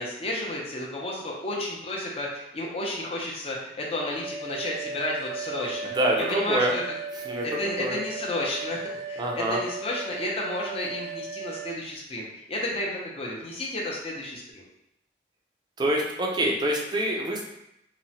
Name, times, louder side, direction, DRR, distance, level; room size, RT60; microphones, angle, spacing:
voice 1, 0.0-5.9 6.3-6.8 7.4-8.8 9.1-14.6, left 1 dB, 35° left, -2 dB, 0.6 m, -32 dB
sound 1, 4.2-11.7, right 4 dB, 85° left, 1.0 m, -36 dB
voice 2, 5.8-6.7 7.2-8.0 9.2-9.6 15.8-17.4, right 1 dB, 25° right, 0 dB, 0.4 m, -26 dB
2.9 x 2.1 x 2.7 m, 0.81 s
head